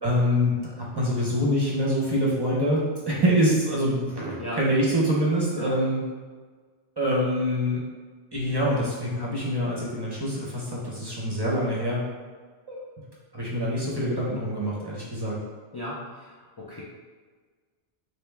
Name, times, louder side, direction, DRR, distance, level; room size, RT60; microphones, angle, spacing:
voice 1, 0.0-6.0 7.0-7.8 8.3-12.0 12.7-12.8 13.3-15.4, equal, 25° right, -6 dB, 0.7 m, -25 dB
voice 2, 15.7-16.8, equal, 40° left, -6 dB, 0.3 m, -36 dB
3.4 x 3.0 x 3.3 m, 1.5 s
omnidirectional pair, 1.2 m